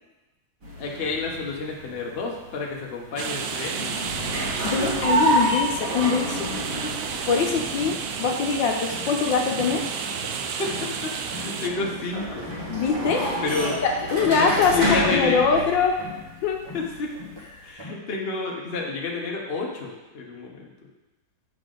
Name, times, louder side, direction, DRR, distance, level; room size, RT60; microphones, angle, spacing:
sound 1, 0.6-17.7, right 1 dB, 45° right, 1.9 m, -30 dB
voice 1, 0.8-3.9 6.8-6.9 10.6-12.4 13.4-13.8 14.4-15.6 16.7-17.1 17.6-20.7, left 3 dB, 40° left, -1 dB, 1.0 m, -30 dB
sound 2, 3.2-11.7, right 6 dB, 70° right, 0.9 m, -32 dB
voice 2, 4.6-6.6 7.3-9.9 12.7-13.2 13.8-16.0 16.4-16.6, left 5 dB, 75° left, 2 dB, 1.5 m, -23 dB
sound 3, 7.8-9.3 9.5-11.0 11.3-14.6 14.9-16.4 16.7-18.1, left 4 dB, 15° left, 1.1 m, -42 dB
7.5 x 6.9 x 3.9 m, 1.1 s
omnidirectional pair, 2.1 m